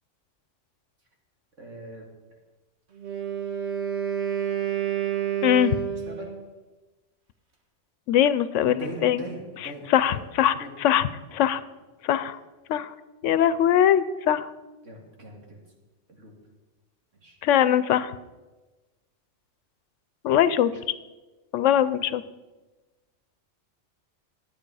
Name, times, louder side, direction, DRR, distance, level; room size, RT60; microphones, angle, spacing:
voice 1, 1.6-2.0 5.8-6.3 8.6-10.2 10.5-10.7 14.8-15.6 16.1-16.3 17.2-17.4 20.7-20.8, right 1 dB, 90° right, 0 dB, 2.6 m, -40 dB
Wind instrument woodwind instrument, 2.9-6.4, right 9 dB, 65° right, 1.7 m, -29 dB
voice 2, 5.4-5.8 8.1-9.2 9.9-10.5 10.8-11.6 12.0-12.4 12.7-12.9 13.2-14.5 17.4-18.1 20.2-20.7 21.5-22.2, left 10 dB, 90° left, 15 dB, 0.9 m, -21 dB
12.0 x 9.1 x 4.8 m, 1.2 s
omnidirectional pair, 1.2 m